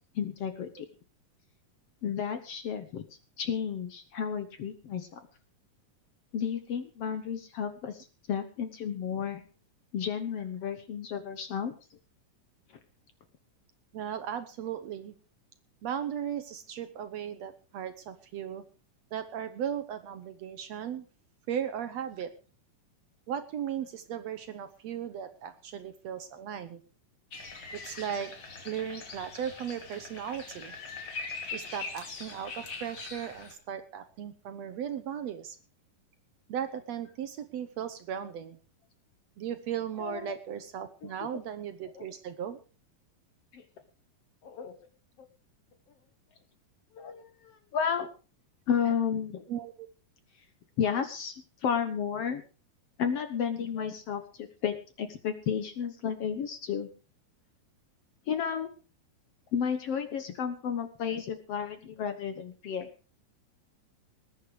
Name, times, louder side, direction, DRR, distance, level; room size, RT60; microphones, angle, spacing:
voice 1, 0.2-0.9 2.0-3.0 3.4-5.2 6.3-9.4 9.9-11.7 40.0-40.4 41.2-41.4 41.9-42.1 43.5-43.6 44.4-44.7 46.9-48.1 48.7-49.4 50.8-51.3 51.6-52.4 53.0-56.9 58.3-58.7 59.5-62.9, left 7 dB, 60° left, 9 dB, 1.9 m, -32 dB
voice 2, 13.9-15.1 15.8-18.6 19.1-21.1 21.5-22.3 23.3-26.8 27.8-28.3 28.6-30.7 31.5-35.6 36.5-38.6 39.4-42.6 49.5-49.9, right 9 dB, 65° right, 10 dB, 1.9 m, -36 dB
sound 1, 27.3-33.5, left 4 dB, 40° left, 3.3 m, -42 dB
20.0 x 9.7 x 4.9 m, 0.36 s
omnidirectional pair, 3.7 m